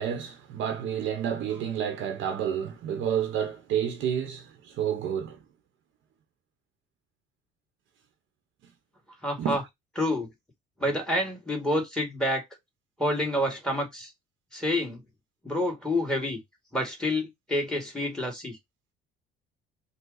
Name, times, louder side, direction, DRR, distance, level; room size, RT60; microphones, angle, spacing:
voice 1, 0.0-5.4 9.4-9.6, right 9 dB, 70° right, 1.1 m, -30 dB
voice 2, 9.2-9.6 10.0-10.3 10.8-12.4 13.0-14.1 14.5-15.0 15.4-16.4 16.7-18.6, left 1 dB, 5° left, 2.2 m, -28 dB
5.5 x 2.4 x 4.0 m
cardioid pair, 100°, 21 cm